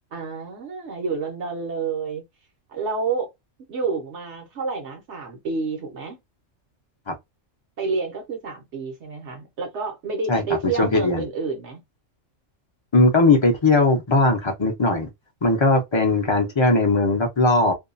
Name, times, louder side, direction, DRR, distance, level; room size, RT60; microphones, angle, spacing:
voice 1, 0.1-2.2 2.7-3.3 3.7-6.2 7.8-11.8, right 4 dB, 65° right, 1.1 m, -29 dB
voice 2, 10.8-11.2 12.9-15.1 15.4-17.7, left 2 dB, 35° left, 0.5 m, -19 dB
2.7 x 2.3 x 2.5 m
omnidirectional pair, 1.3 m